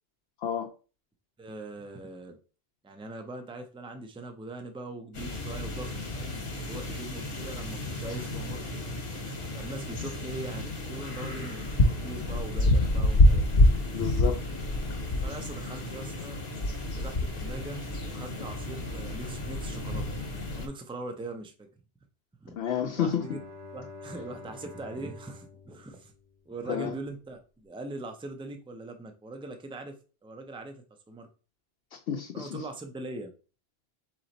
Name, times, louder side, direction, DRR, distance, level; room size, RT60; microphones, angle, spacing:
voice 1, 1.4-2.4 2.8-8.6 9.5-13.7 15.2-16.4 16.9-20.1 20.6-21.7 22.4-22.6 22.9-23.4 23.7-26.1 26.5-30.0 30.2-31.3 32.3-33.3, right 2 dB, 10° right, 5 dB, 0.3 m, -41 dB
sound 1, 5.1-20.7, left 1 dB, 60° left, 1.2 m, -28 dB
voice 2, 13.9-14.3 22.5-23.2 26.7-26.9 31.9-32.6, left 8 dB, 80° left, 2 dB, 0.9 m, -30 dB
Bowed string instrument, 22.9-26.8, left 3 dB, 45° right, 1.0 m, -48 dB
4.1 x 3.1 x 3.9 m, 0.36 s
omnidirectional pair, 1.1 m